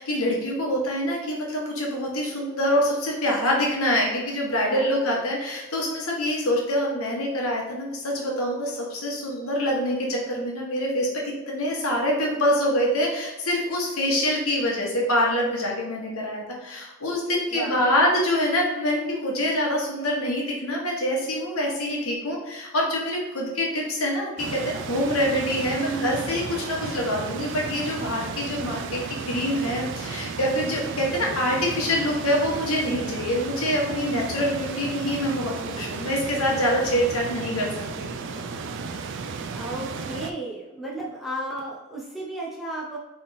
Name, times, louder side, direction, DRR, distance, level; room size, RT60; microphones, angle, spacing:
voice 1, 0.0-29.0 29.2-37.7 38.0-38.1, equal, 75° left, -2 dB, 1.3 m, -25 dB
voice 2, 4.7-5.2 17.5-18.1 25.8-26.4 39.5-43.0, right 2 dB, ahead, -5 dB, 0.7 m, -34 dB
sound 1, 24.4-40.3, right 4 dB, 55° right, 0.3 m, -34 dB
3.5 x 3.5 x 4.1 m, 1.0 s
head